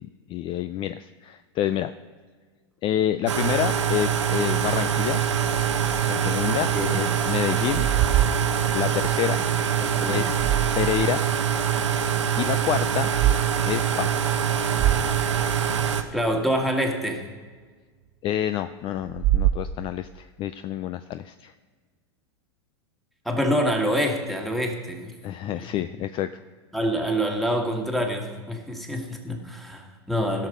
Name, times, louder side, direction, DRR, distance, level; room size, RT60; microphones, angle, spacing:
voice 1, 0.0-1.9 2.8-5.2 6.1-7.9 8.7-9.4 10.1-10.5 10.8-11.2 12.4-13.1 13.7-14.3 18.2-21.5 25.2-26.3, left 12 dB, 35° left, 12 dB, 0.4 m, -28 dB
sound 1, 3.3-16.0, right 8 dB, 90° right, 0.9 m, -24 dB
voice 2, 6.6-6.9 9.8-10.4 16.1-17.2 23.3-25.1 25.4-25.7 26.7-30.5, equal, ahead, 2 dB, 1.8 m, -26 dB
sound 2, 7.7-9.2 10.1-11.1 11.6-11.7 13.0-13.4 13.8-14.0 14.4-14.5 14.7-16.0 19.0-20.2, right 12 dB, 40° right, 0.5 m, -26 dB
16.5 x 6.4 x 5.1 m, 1.5 s
hypercardioid pair, 110°, 15 cm